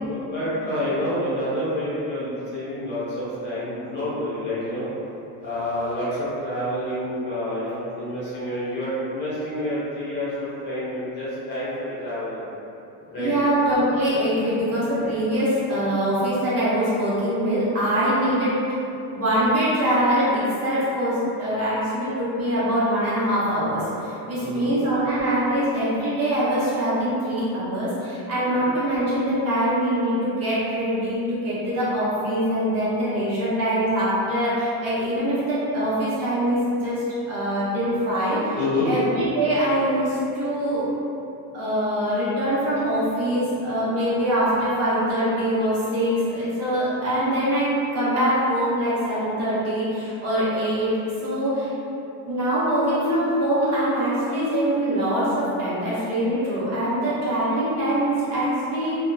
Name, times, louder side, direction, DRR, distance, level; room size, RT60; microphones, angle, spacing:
voice 1, 0.1-4.9 5.4-12.4 13.1-13.3 24.4-24.7 28.4-28.7 38.5-38.9, left 1 dB, 25° left, -12 dB, 0.7 m, -28 dB
voice 2, 13.2-18.5 19.1-38.6 38.8-40.9 41.5-50.9 51.2-51.7 52.3-59.0, right 1 dB, 35° right, -10 dB, 0.7 m, -23 dB
2.7 x 2.4 x 2.3 m, 2.9 s
cardioid pair, 165°, 43 cm